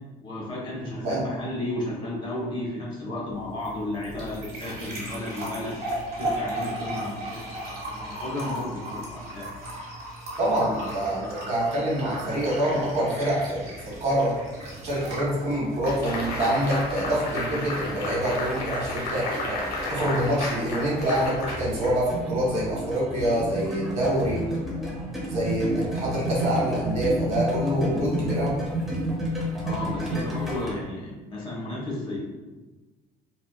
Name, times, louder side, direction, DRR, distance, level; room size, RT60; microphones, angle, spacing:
voice 1, 0.2-5.8 6.2-9.5 29.6-32.2, left 1 dB, 30° left, -5 dB, 0.9 m, -33 dB
sound 1, 3.3-18.3, right 1 dB, 65° right, 0.9 m, -37 dB
voice 2, 10.4-14.3 14.8-19.6 19.9-24.4 25.2-28.6, right 1 dB, 40° right, -6 dB, 1.1 m, -26 dB
sound 2, 11.7-11.9 12.2-30.7, equal, ahead, 0.5 m, -33 dB
sound 3, 15.8-22.3, left 1 dB, 65° left, 0.7 m, -32 dB
2.6 x 2.3 x 2.2 m, 1.2 s
cardioid pair, 110°, 17 cm